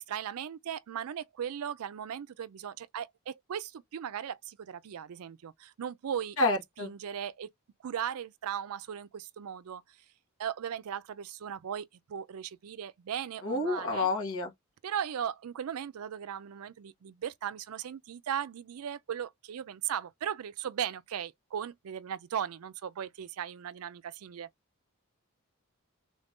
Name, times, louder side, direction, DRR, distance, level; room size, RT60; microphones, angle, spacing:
voice 1, 0.0-7.5 7.8-9.8 10.4-14.1 14.8-24.5, right 9 dB, 80° right, 0.4 m, -37 dB
voice 2, 6.4-6.9 13.4-14.5, left 2 dB, 65° left, 1.5 m, -29 dB
3.6 x 2.6 x 3.5 m
head